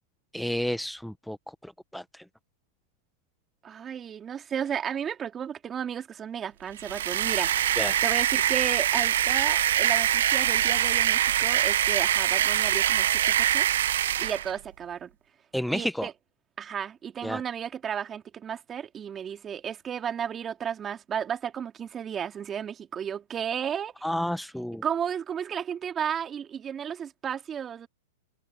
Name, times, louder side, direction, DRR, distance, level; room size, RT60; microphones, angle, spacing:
voice 1, 0.3-1.4 1.6-2.2 7.8-8.0 15.5-16.1 17.2-17.4 24.0-24.8, equal, ahead, 0.9 m, -31 dB
voice 2, 3.6-7.5 8.0-13.7 14.2-15.1 15.7-16.1 16.6-23.9 24.8-27.9, right 8 dB, 25° right, 2.8 m, -33 dB
sound 1, 6.8-14.5, right 11 dB, 70° right, 0.7 m, -24 dB
hypercardioid pair, 110°, 0 cm